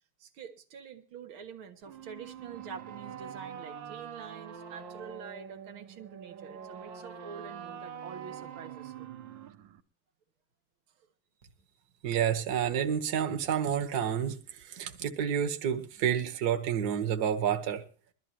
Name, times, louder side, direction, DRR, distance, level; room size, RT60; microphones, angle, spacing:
voice 1, 0.2-9.1, right 6 dB, 85° right, 6 dB, 2.2 m, -46 dB
sound 1, 1.8-9.8, right 8 dB, 70° right, 1.7 m, -44 dB
voice 2, 12.0-17.8, right 8 dB, 55° right, 5 dB, 1.6 m, -29 dB
22.0 x 12.5 x 2.9 m, 0.38 s
omnidirectional pair, 2.2 m